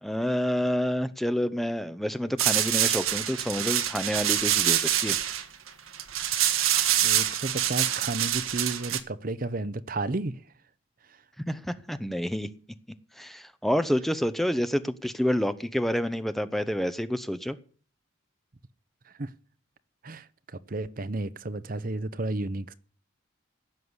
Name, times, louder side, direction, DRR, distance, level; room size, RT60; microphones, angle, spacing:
voice 1, 0.0-5.2 11.5-12.5 13.2-17.6, equal, ahead, 0.7 m, -28 dB
sound 1, 2.4-9.0, right 11 dB, 90° right, 1.4 m, -26 dB
voice 2, 7.0-10.3 19.2-19.3 20.0-20.3 20.7-22.7, right 2 dB, 45° right, 0.7 m, -32 dB
16.5 x 6.7 x 9.6 m
head